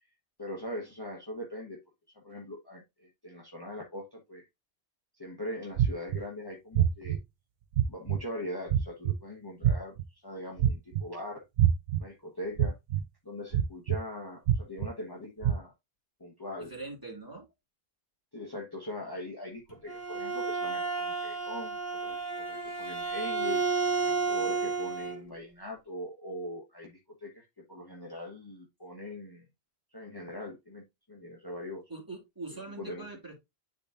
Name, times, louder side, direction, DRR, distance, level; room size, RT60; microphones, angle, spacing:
voice 1, 0.4-1.8 2.1-4.4 5.2-7.2 7.9-11.4 12.0-12.7 13.2-15.7 16.2-16.7 18.3-23.6 24.2-29.4 29.9-31.8 32.5-33.1, left 1 dB, 20° left, 0 dB, 1.2 m, -41 dB
sound 1, 5.8-6.2 6.8-7.2 7.7-8.2 8.7-9.1 9.6-10.0 10.6-11.0 11.6-12.0 12.6-13.0 13.5-14.0 14.5-14.9 15.4-15.5, right 10 dB, 80° right, 0.9 m, -24 dB
voice 2, 16.6-17.4 31.9-33.3, right 3 dB, 20° right, -1 dB, 2.5 m, -43 dB
Bowed string instrument, 19.7-25.2, right 4 dB, 45° left, 2.1 m, -31 dB
10.0 x 3.8 x 2.6 m, 0.20 s
omnidirectional pair, 1.1 m